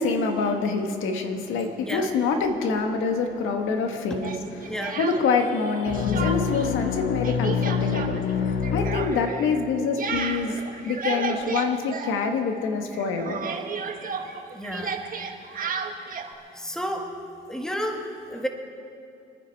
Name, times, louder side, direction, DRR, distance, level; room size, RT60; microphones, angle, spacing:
voice 1, 0.0-4.3 4.6-10.6 10.8-13.5, left 4 dB, 90° left, 4 dB, 1.5 m, -26 dB
Speech, 4.2-5.5 5.8-6.7 6.9-12.6 12.9-16.3, right 5 dB, 45° right, 1.4 m, -33 dB
voice 2, 4.7-5.0 14.5-15.1 16.5-18.5, equal, 5° left, 2 dB, 1.6 m, -32 dB
sound 1, 5.9-9.7, left 6 dB, 60° left, 0.9 m, -26 dB
25.5 x 10.0 x 4.7 m, 2.6 s
cardioid pair, 90°, 20 cm